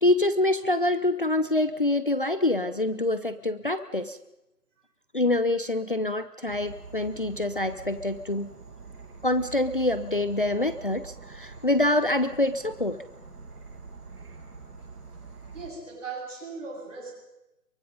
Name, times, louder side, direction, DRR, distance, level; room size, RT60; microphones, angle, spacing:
voice 1, 0.0-4.2 5.1-8.5 9.2-13.0, left 2 dB, 35° left, 11 dB, 0.7 m, -25 dB
Insect / Frog, 6.5-15.7, right 4 dB, 70° right, 7.2 m, -45 dB
voice 2, 15.5-17.1, right 4 dB, 50° right, 0 dB, 7.7 m, -38 dB
23.5 x 23.0 x 5.3 m, 0.92 s
hypercardioid pair, 170°, 47 cm